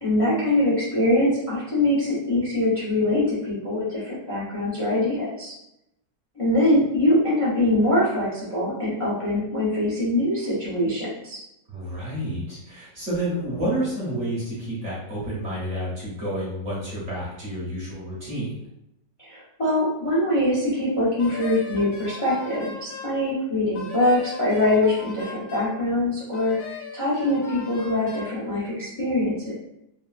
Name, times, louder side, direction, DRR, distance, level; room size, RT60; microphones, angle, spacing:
voice 1, 0.0-5.5 6.4-11.4 19.2-29.5, left 1 dB, 45° left, -8 dB, 0.4 m, -23 dB
voice 2, 11.7-18.5, right 1 dB, 50° right, -7 dB, 1.0 m, -29 dB
Wind instrument woodwind instrument, 21.2-23.2 23.7-25.8 26.3-28.3, left 4 dB, 65° left, 1.0 m, -38 dB
3.4 x 2.4 x 2.3 m, 0.84 s
omnidirectional pair, 2.0 m